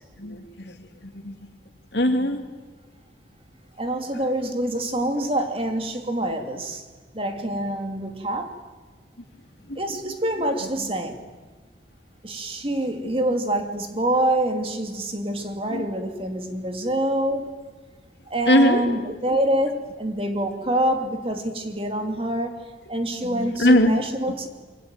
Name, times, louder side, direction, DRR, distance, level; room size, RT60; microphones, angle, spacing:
voice 1, 0.2-0.9 1.2-1.3 1.9-2.4 9.7-9.8 15.7-15.9 18.5-18.8 23.2-23.9, left 1 dB, 70° left, 6 dB, 2.8 m, -20 dB
voice 2, 3.8-6.8 7.1-8.5 9.8-11.2 12.2-17.5 18.3-22.5 22.9-24.5, right 1 dB, 30° right, 5 dB, 2.7 m, -26 dB
26.5 x 24.5 x 9.1 m, 1.3 s
head